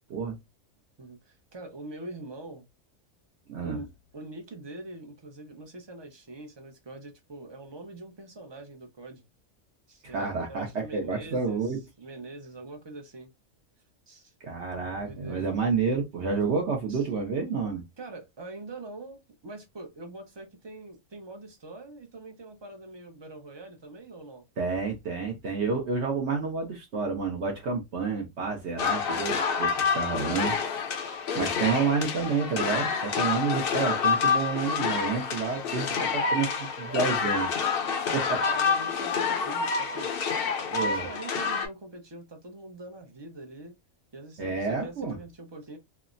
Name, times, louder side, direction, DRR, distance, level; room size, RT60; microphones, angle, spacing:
voice 1, 1.0-2.7 3.6-9.2 9.9-13.3 14.1-14.3 14.9-15.5 16.9-17.0 18.0-24.5 29.8-30.1 35.5-35.7 37.2-37.4 37.8-40.1 40.8-43.7 44.1-45.8, right 2 dB, 35° right, 0.4 m, -44 dB
voice 2, 3.5-3.8 10.1-11.8 14.4-17.8 24.6-30.5 31.3-37.5 38.1-38.4 40.7-41.1 44.4-45.2, right 5 dB, 65° right, 0.9 m, -29 dB
sound 1, 28.8-41.7, left 5 dB, 55° left, 0.7 m, -28 dB
3.2 x 2.0 x 2.4 m
omnidirectional pair, 1.3 m